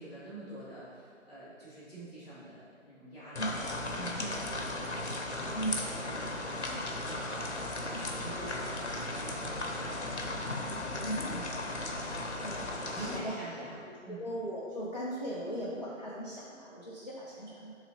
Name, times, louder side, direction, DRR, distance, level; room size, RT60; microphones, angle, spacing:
voice 1, 0.0-11.2 12.9-14.3, right 1 dB, ahead, -24 dB, 1.7 m, -47 dB
sound 1, 3.4-13.2, left 2 dB, 55° left, 1.0 m, -36 dB
voice 2, 3.9-4.3 5.5-5.7 7.9-8.3 11.0-11.4 12.0-13.4 14.1-17.7, right 1 dB, 35° left, -7 dB, 0.6 m, -38 dB
11.5 x 4.0 x 2.9 m, 2.3 s
figure-of-eight pair, 175°, 39 cm